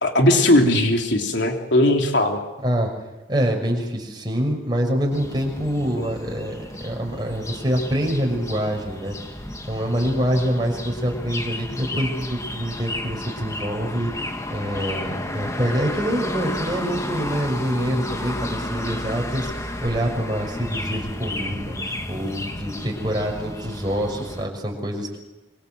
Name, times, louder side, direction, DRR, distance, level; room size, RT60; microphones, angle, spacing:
voice 1, 0.0-2.4, left 1 dB, 65° left, 3 dB, 3.4 m, -18 dB
voice 2, 3.3-6.5 6.8-9.2 9.7-14.1 14.5-25.2, equal, 20° right, 0 dB, 6.0 m, -25 dB
sound 1, 5.1-24.5, left 1 dB, 15° left, 1.9 m, -32 dB
26.0 x 25.0 x 7.9 m, 1.0 s
head